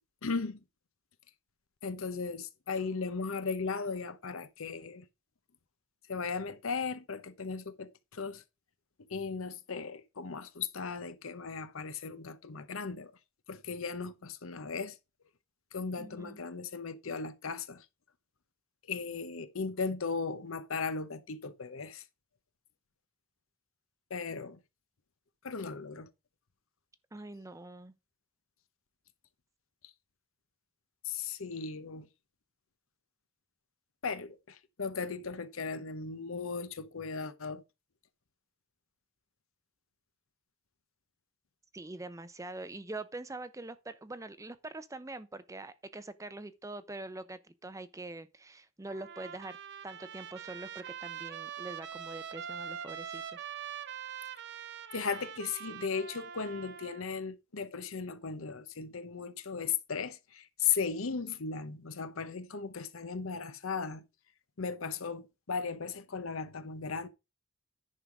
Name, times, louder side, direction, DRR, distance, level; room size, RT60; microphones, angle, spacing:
voice 1, 0.2-0.6 1.8-5.1 6.1-8.4 9.1-13.1 13.5-15.0 15.7-17.8 18.9-22.0 24.1-24.6 25.4-26.1 31.0-32.1 34.0-37.6 54.9-64.0 64.6-67.1, left 5 dB, 70° left, 0.8 m, -36 dB
voice 2, 16.0-16.4 27.1-27.9 41.7-49.6 49.8-53.5, right 2 dB, 15° right, 0.6 m, -44 dB
Trumpet, 48.9-57.1, right 8 dB, 55° right, 0.8 m, -43 dB
10.5 x 3.8 x 5.9 m
head